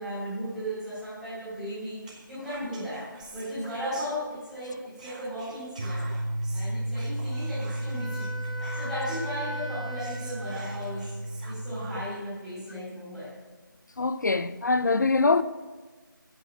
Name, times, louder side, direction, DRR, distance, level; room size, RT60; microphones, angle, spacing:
voice 1, 0.0-2.0 2.3-3.0 3.3-6.0 6.5-8.3 8.7-11.1 11.4-13.3, equal, ahead, 1.4 m, -36 dB
Whispering, 2.0-4.6 4.9-9.4 9.7-9.8 10.0-12.2, right 2 dB, 20° right, 1.2 m, -48 dB
sound 1, 5.8-12.0, right 1 dB, 45° right, 0.8 m, -33 dB
Wind instrument woodwind instrument, 7.3-11.4, equal, 85° left, 3.5 m, -41 dB
voice 2, 14.0-15.4, left 3 dB, 55° left, 0.5 m, -23 dB
8.1 x 6.4 x 7.5 m
figure-of-eight pair, 175°, 11 cm